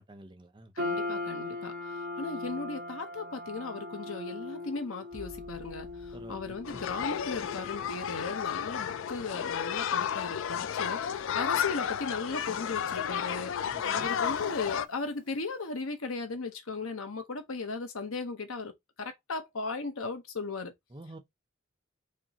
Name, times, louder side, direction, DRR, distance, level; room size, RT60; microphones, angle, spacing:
voice 1, 0.0-0.7 6.1-6.8 13.7-14.1 20.9-21.2, right 1 dB, 25° right, 0.7 m, -48 dB
voice 2, 0.7-18.7 19.0-20.7, left 4 dB, 85° left, 1.0 m, -37 dB
sound 1, 0.8-15.2, left 2 dB, 40° right, 1.7 m, -42 dB
sound 2, 5.1-10.6 11.0-11.6, equal, 60° right, 1.8 m, -55 dB
sound 3, 6.6-14.9, left 8 dB, 65° left, 0.4 m, -32 dB
4.8 x 2.9 x 2.8 m
head